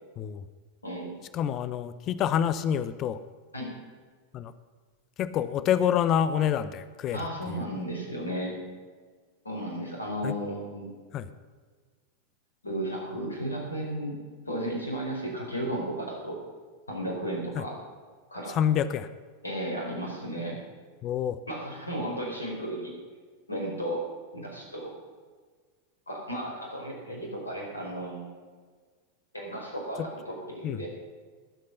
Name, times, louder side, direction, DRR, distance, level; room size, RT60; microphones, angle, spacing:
voice 1, 0.2-0.5 1.3-3.2 4.3-4.5 5.2-7.6 10.2-10.3 11.1-11.3 17.6-17.7 18.5-19.1 21.0-21.4 30.6-30.8, left 9 dB, 35° left, 14 dB, 0.8 m, -27 dB
voice 2, 0.8-1.2 3.5-3.7 7.1-8.6 9.4-10.9 12.6-14.2 14.5-16.4 16.9-17.8 18.3-18.6 19.4-20.6 21.5-22.9 23.5-24.1 24.3-24.9 26.1-28.3 29.3-30.9, right 1 dB, 80° left, 0 dB, 5.0 m, -34 dB
19.5 x 8.6 x 5.6 m, 1.5 s
figure-of-eight pair, 90°, 0 cm